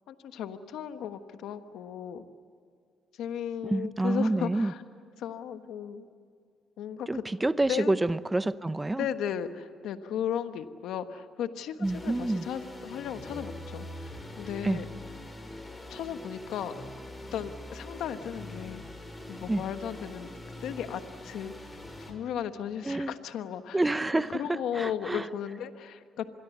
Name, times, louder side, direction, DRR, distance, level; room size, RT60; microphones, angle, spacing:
voice 1, 0.1-2.2 3.2-4.8 5.2-6.1 6.8-7.2 7.7-7.9 9.0-14.9 15.9-16.7 17.3-18.8 19.3-20.3 20.6-21.5 22.0-23.8 24.3-26.3, left 9 dB, 80° left, 9 dB, 1.3 m, -35 dB
voice 2, 3.6-4.7 7.1-9.1 11.8-12.5 14.6-14.8 19.5-19.6 22.9-23.1 23.7-25.3, right 2 dB, 15° right, 15 dB, 0.7 m, -28 dB
sound 1, 11.8-22.1, left 1 dB, 15° left, 5.7 m, -43 dB
26.5 x 22.0 x 8.3 m, 2.3 s
cardioid pair, 90°, 0 cm